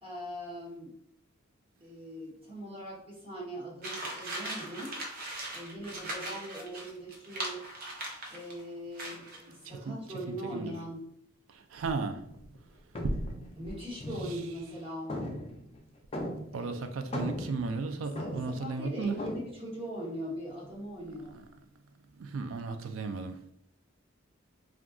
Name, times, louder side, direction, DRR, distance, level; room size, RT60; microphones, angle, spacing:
voice 1, 0.0-0.9 1.8-5.0 5.5-7.6 8.3-11.1 13.6-15.2 16.5-16.7 18.2-21.4, equal, 25° right, 1.1 m, -40 dB
sound 1, 3.8-8.6 9.0-9.5, right 2 dB, 45° right, 0.7 m, -39 dB
voice 2, 10.3-10.7 11.7-12.2 16.5-19.2 22.3-23.5, right 4 dB, 75° right, 0.4 m, -34 dB
sound 2, 12.3-12.6 12.9-14.7 15.1-16.7 17.0-18.7 19.2-19.5, left 1 dB, 30° left, 0.5 m, -38 dB
2.4 x 2.2 x 3.6 m
head